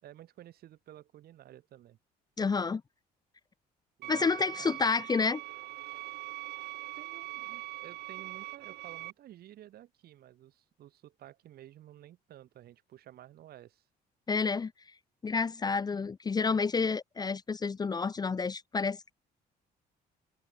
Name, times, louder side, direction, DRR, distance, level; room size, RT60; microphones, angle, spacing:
voice 1, 0.0-2.0 4.0-4.8 6.9-13.8, right 13 dB, 65° right, 4.9 m, -53 dB
voice 2, 2.4-2.8 4.1-5.4 14.3-14.7 15.2-19.1, left 4 dB, 25° left, 0.7 m, -29 dB
sound 1, 4.0-9.1, right 18 dB, 85° right, 2.9 m, -42 dB
open air
cardioid pair, 110°, 17 cm